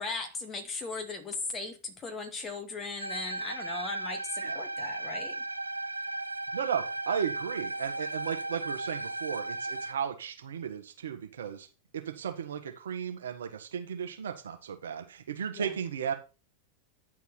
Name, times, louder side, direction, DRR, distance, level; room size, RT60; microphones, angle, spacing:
voice 1, 0.0-5.4 15.5-15.7, left 3 dB, 25° left, 2.5 m, -38 dB
sound 1, 3.0-9.9, right 2 dB, 85° right, 0.7 m, -36 dB
voice 2, 6.5-11.7 11.9-16.1, right 8 dB, 65° right, 1.5 m, -35 dB
10.0 x 4.6 x 5.8 m
figure-of-eight pair, 90°, 0 cm